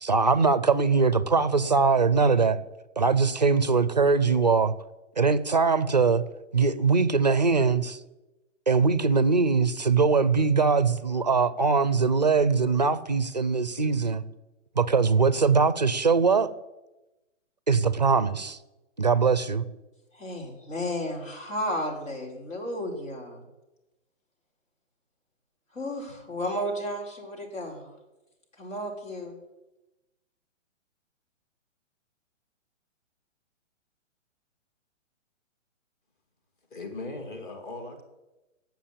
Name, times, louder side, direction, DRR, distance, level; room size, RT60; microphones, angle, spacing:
voice 1, 0.0-2.6 3.0-4.7 5.2-6.2 6.5-8.0 8.7-14.2 14.8-16.5 17.7-18.6 19.0-19.6, right 4 dB, 35° right, 0.4 m, -22 dB
voice 2, 20.1-23.5 25.7-27.9 28.6-29.4, left 1 dB, 80° left, 4.6 m, -33 dB
voice 3, 36.7-38.0, left 2 dB, 40° left, 2.4 m, -38 dB
8.7 x 7.4 x 8.7 m
hypercardioid pair, 180°, 38 cm